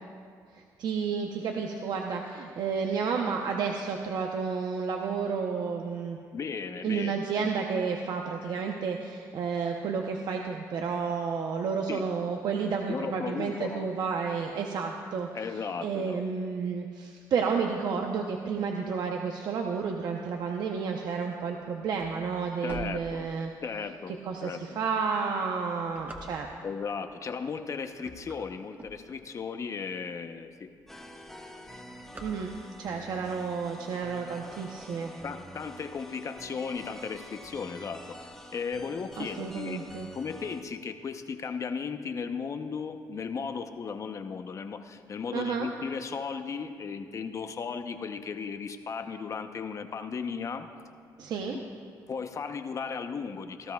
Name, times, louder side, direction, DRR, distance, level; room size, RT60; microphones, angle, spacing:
voice 1, 0.5-6.2 6.8-23.5 24.2-26.5 32.2-35.1 39.2-40.1 45.3-45.7 51.2-51.6, right 5 dB, 65° right, 2 dB, 0.8 m, -31 dB
voice 2, 6.3-7.2 11.9-12.1 12.9-13.9 15.3-16.2 22.6-23.3 23.6-24.1 24.4-24.6 26.6-30.7 35.2-50.7 51.4-51.6 52.1-53.7, left 5 dB, 45° left, 8 dB, 0.8 m, -36 dB
sound 1, 21.7-23.8 24.3-24.4 25.1-26.8 27.4-27.7 27.9-29.5 30.0-30.1 30.3-30.4 30.7-31.1 31.3-32.9, right 1 dB, 25° right, 1.4 m, -46 dB
sound 2, 30.9-40.6, equal, 5° left, 1.1 m, -47 dB
18.0 x 13.0 x 2.3 m, 2.2 s
cardioid pair, 90°, 8 cm